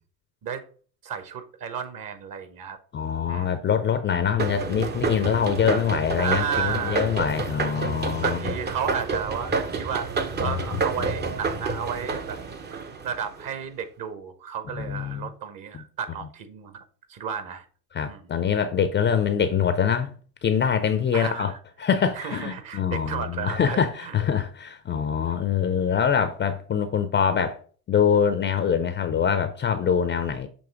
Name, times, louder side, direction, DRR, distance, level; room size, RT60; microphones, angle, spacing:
voice 1, 1.0-2.8 3.2-3.7 6.2-7.0 8.2-12.4 12.7-12.8 13.0-16.8 17.1-17.6 18.1-18.3 21.1-21.6 22.2-24.1, right 7 dB, 40° right, 1.2 m, -33 dB
voice 2, 2.9-8.5 10.4-10.8 14.7-15.3 15.7-15.8 17.9-20.1 20.4-21.5 21.8-27.6 27.9-30.5, left 7 dB, 25° left, 0.5 m, -24 dB
sound 1, 4.4-13.5, right 4 dB, 20° right, 0.7 m, -29 dB
7.0 x 3.1 x 4.7 m
hypercardioid pair, 75°, 49 cm